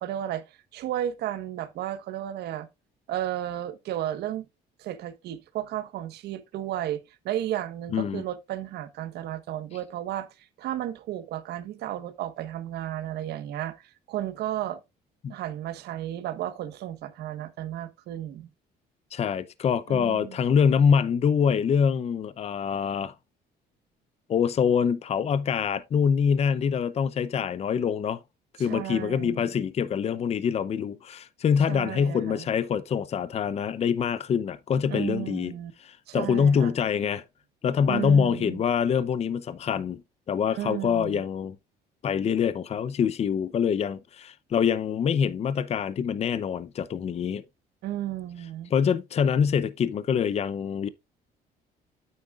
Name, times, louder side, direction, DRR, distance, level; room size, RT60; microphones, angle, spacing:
voice 1, 0.0-2.7 3.1-4.4 4.8-7.0 7.2-10.3 10.6-14.8 15.3-18.5 19.9-20.4 28.6-29.4 31.7-32.5 34.9-35.7 36.1-36.7 37.9-38.6 40.5-41.2 47.8-48.7, right 12 dB, 75° right, 1.3 m, -33 dB
voice 2, 7.9-8.2 15.2-15.3 19.1-23.1 24.3-28.2 28.6-35.5 35.8-37.2 37.6-40.0 40.3-41.6 42.0-47.4 48.7-50.9, left 7 dB, 40° left, 0.6 m, -25 dB
8.7 x 8.5 x 2.4 m
cardioid pair, 110°, 17 cm